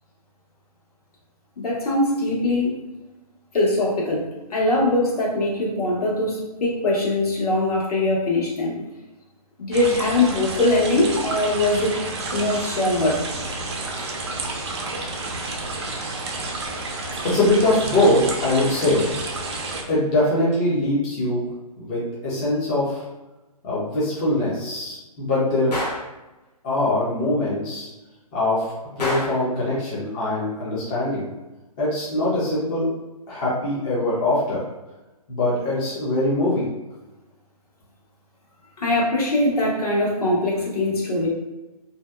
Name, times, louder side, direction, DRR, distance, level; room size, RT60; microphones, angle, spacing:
voice 1, 1.6-2.8 3.5-8.8 9.6-11.9 12.3-13.2 14.0-14.1 38.8-41.3, left 2 dB, 70° left, -4 dB, 1.2 m, -22 dB
sound 1, 9.7-19.8, right 2 dB, 45° right, 0.4 m, -30 dB
voice 2, 17.2-19.1 19.9-21.4 21.8-23.1 23.6-25.8 26.6-27.9 28.3-31.3 31.8-32.9 33.3-34.7 35.3-36.7, left 1 dB, 15° left, -8 dB, 0.4 m, -22 dB
Gunshot gunfire, 25.7-26.1 29.0-29.5, left 1 dB, 90° left, 0.8 m, -27 dB
2.6 x 2.2 x 2.2 m, 1.1 s
hypercardioid pair, 155°, 20 cm